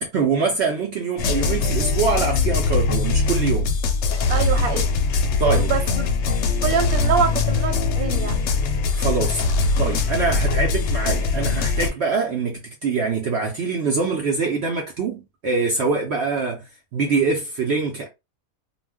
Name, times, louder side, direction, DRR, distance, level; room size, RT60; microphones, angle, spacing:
voice 1, 0.1-3.8 5.4-5.7 8.9-9.4 9.8-18.1, right 4 dB, 60° right, 0.7 m, -24 dB
sound 1, 1.2-11.9, left 4 dB, 65° left, 0.7 m, -21 dB
voice 2, 4.3-4.9 5.5-5.8 6.6-8.4, right 7 dB, 90° right, 1.1 m, -24 dB
2.4 x 2.1 x 3.4 m
omnidirectional pair, 1.5 m